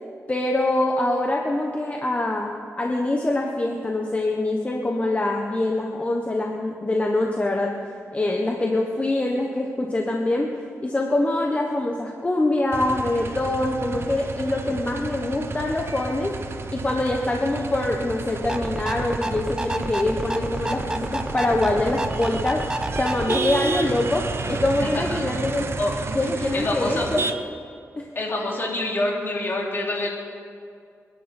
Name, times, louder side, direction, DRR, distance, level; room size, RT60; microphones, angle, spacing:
voice 1, 0.3-7.7 8.1-10.5 10.8-16.4 16.7-25.6 26.1-27.2 28.0-28.1, left 2 dB, 25° left, 1 dB, 1.4 m, -24 dB
sound 1, 12.7-27.3, right 4 dB, 50° right, 1.0 m, -32 dB
sound 2, 18.4-23.4, right 1 dB, 15° right, 0.8 m, -30 dB
voice 2, 24.8-25.2 25.8-25.9 26.2-27.1 28.2-30.1, left 2 dB, 45° left, -2 dB, 3.7 m, -27 dB
29.0 x 11.0 x 4.5 m, 2.4 s
wide cardioid pair, 95°, 5 cm